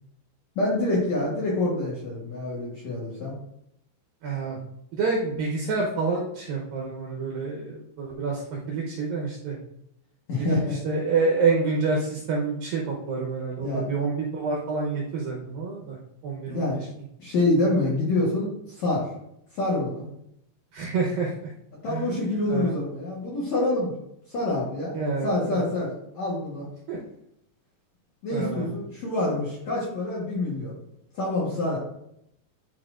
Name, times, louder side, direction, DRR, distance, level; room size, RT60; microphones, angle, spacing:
voice 1, 0.6-3.3 10.3-10.8 13.6-13.9 16.5-16.8 17.2-19.1 19.5-20.1 21.8-23.9 24.3-25.0 25.2-26.7 28.2-30.7 31.1-31.8, left 2 dB, 65° left, -6 dB, 1.9 m, -26 dB
voice 2, 4.2-4.6 4.9-9.6 10.4-16.0 16.2-16.7 20.7-21.5 21.9-22.1 22.5-22.7 24.9-25.6 26.9-27.0 28.3-28.7, right 4 dB, 75° right, -2 dB, 2.3 m, -28 dB
11.0 x 4.2 x 2.5 m, 0.77 s
omnidirectional pair, 5.1 m